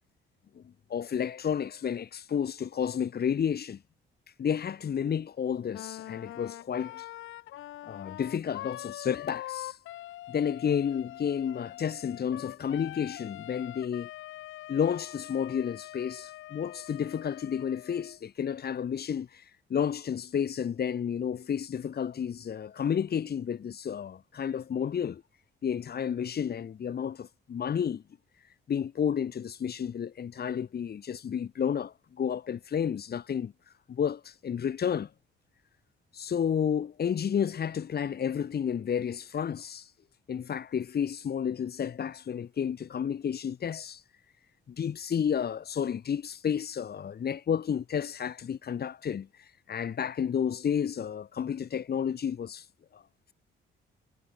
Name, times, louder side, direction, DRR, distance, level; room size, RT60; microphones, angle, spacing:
voice 1, 0.9-3.8 4.4-7.1 7.8-9.8 10.3-14.1 14.7-19.4 19.7-25.2 25.6-28.0 28.7-33.5 33.9-35.1 36.1-39.9 40.3-44.0 44.7-49.3 49.7-52.6 52.9-53.0, left 8 dB, 50° left, 3.7 m, -31 dB
Wind instrument woodwind instrument, 5.7-18.2, left 15 dB, 85° left, 5.7 m, -44 dB
cardioid pair, 90°, 20 cm